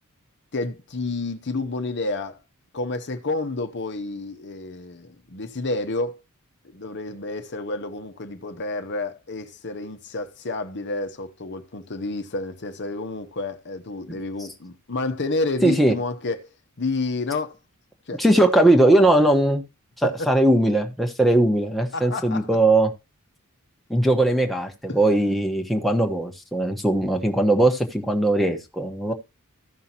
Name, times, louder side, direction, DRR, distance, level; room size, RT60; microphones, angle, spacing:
voice 1, 0.5-2.4 2.7-6.2 6.6-16.4 16.8-17.5 18.1-18.2 20.0-20.1 21.9-22.5 24.9-25.0 29.1-29.2, left 3 dB, 55° left, 0.9 m, -30 dB
voice 2, 15.6-15.9 18.2-19.6 20.0-22.9 23.9-29.1, right 1 dB, ahead, 1.2 m, -19 dB
15.0 x 5.6 x 2.9 m
head